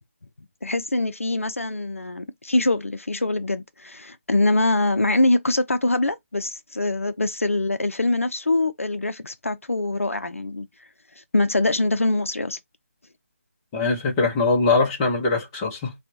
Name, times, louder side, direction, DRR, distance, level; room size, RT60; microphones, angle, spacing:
voice 1, 0.6-10.7 11.3-12.6, left 2 dB, 75° left, 0.7 m, -23 dB
voice 2, 13.7-15.9, left 3 dB, 15° left, 1.1 m, -22 dB
5.9 x 2.5 x 2.8 m
figure-of-eight pair, 160°, 7 cm